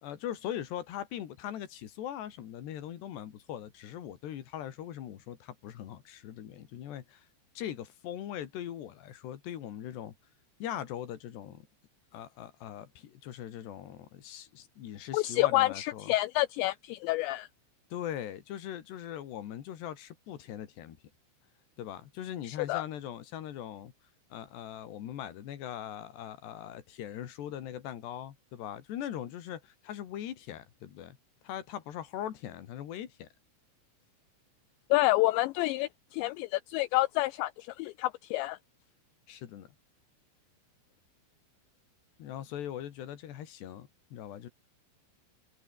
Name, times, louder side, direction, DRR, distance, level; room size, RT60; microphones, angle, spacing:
voice 1, 0.0-7.3 7.6-10.1 10.6-11.7 12.1-16.1 17.9-21.0 21.8-23.9 24.3-31.2 31.4-33.3 39.3-39.7 42.2-44.5, left 11 dB, 60° left, 4.0 m, -40 dB
voice 2, 15.1-17.5 22.4-22.8 34.9-38.6, left 18 dB, 85° left, 2.5 m, -28 dB
omnidirectional pair, 5.8 m